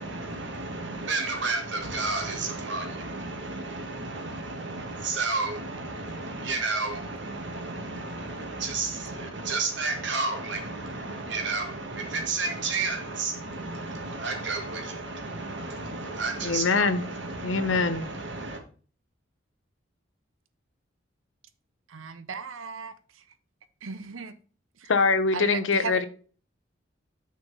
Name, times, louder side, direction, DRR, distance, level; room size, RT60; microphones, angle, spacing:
voice 1, 0.0-18.6, right 3 dB, 65° right, 1.8 m, -32 dB
voice 2, 16.4-17.0 17.4-18.1 24.9-26.1, left 4 dB, 75° left, 0.8 m, -23 dB
voice 3, 21.9-23.2 23.8-24.3 24.8-24.9 25.3-26.1, right 5 dB, 85° right, 0.7 m, -36 dB
6.2 x 4.5 x 5.4 m
head